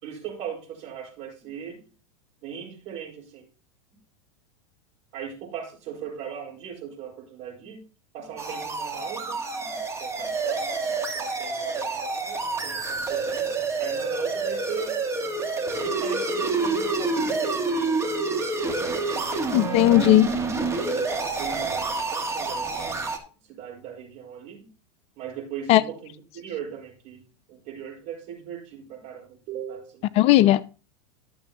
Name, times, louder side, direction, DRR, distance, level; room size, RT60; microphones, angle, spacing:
voice 1, 0.0-1.8 2.4-3.5 5.1-7.8 8.1-9.4 10.0-10.7 11.1-13.5 13.8-15.0 15.7-18.0 19.1-20.3 20.7-23.0 23.4-24.7 25.2-30.1, right 8 dB, 55° right, 4.4 m, -39 dB
sound 1, 8.4-23.2, right 3 dB, 20° right, 1.5 m, -28 dB
voice 2, 19.5-20.3 25.7-25.8 30.2-30.6, left 15 dB, 40° left, 0.4 m, -16 dB
12.5 x 7.0 x 2.8 m
hypercardioid pair, 110°, 15 cm